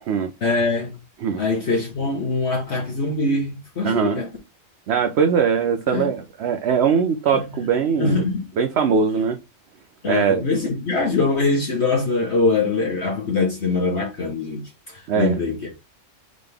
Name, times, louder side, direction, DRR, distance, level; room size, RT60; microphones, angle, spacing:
voice 1, 0.4-1.0 1.4-4.3 5.9-6.1 8.0-8.4 10.0-15.6, left 3 dB, 55° left, 1.3 m, -23 dB
voice 2, 3.8-4.2 4.9-8.3 8.6-9.4 10.1-10.4 15.1-15.4, right 6 dB, 60° right, 0.8 m, -21 dB
3.8 x 3.6 x 3.4 m
omnidirectional pair, 1.5 m